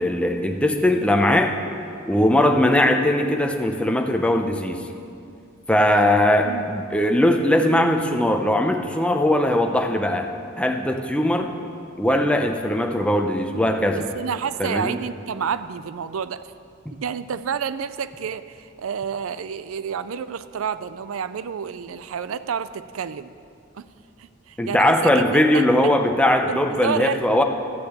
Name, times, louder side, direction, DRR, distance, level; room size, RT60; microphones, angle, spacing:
voice 1, 0.0-1.5 2.0-4.8 5.7-10.3 10.6-11.5 12.0-14.0 14.6-15.0 16.9-17.0 24.6-27.4, left 1 dB, 5° left, 4 dB, 0.7 m, -20 dB
voice 2, 13.9-16.4 16.9-23.3 23.7-23.9 24.2-26.0 26.5-27.4, right 7 dB, 80° right, 14 dB, 0.4 m, -29 dB
12.0 x 6.7 x 8.1 m, 2.4 s
head